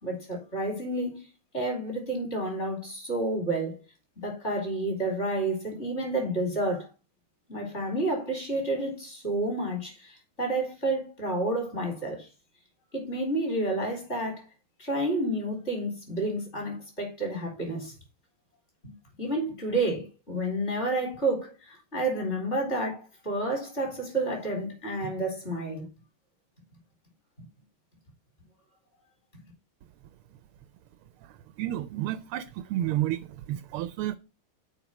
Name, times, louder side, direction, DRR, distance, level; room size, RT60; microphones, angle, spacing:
voice 1, 0.0-1.2 1.5-3.8 4.2-6.9 7.5-12.3 12.9-14.4 14.8-17.9 19.2-25.9, right 2 dB, 30° left, 4.1 m, -30 dB
voice 2, 31.6-32.4 32.7-33.2 33.5-34.1, right 13 dB, 90° right, 1.5 m, -30 dB
7.1 x 5.3 x 5.9 m
omnidirectional pair, 2.3 m